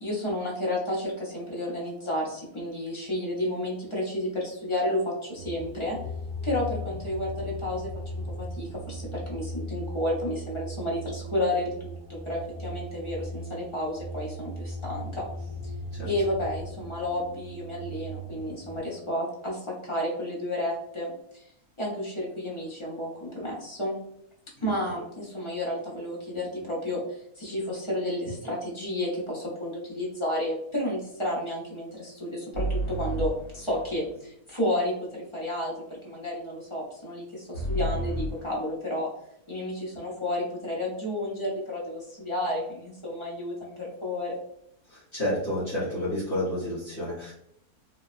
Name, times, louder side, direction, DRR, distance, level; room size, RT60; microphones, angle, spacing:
voice 1, 0.0-6.0 6.4-7.9 8.1-15.3 16.0-21.4 21.8-23.9 24.6-39.1 39.5-44.4, left 1 dB, 25° left, -5 dB, 0.8 m, -31 dB
sound 1, 5.4-18.8, equal, 45° right, 0.8 m, -38 dB
sound 2, 32.5-34.2 37.5-38.4, right 1 dB, 75° left, 2.1 m, -31 dB
voice 2, 44.9-47.3, left 1 dB, 50° left, -9 dB, 1.3 m, -30 dB
3.9 x 2.2 x 2.4 m, 0.73 s
omnidirectional pair, 1.6 m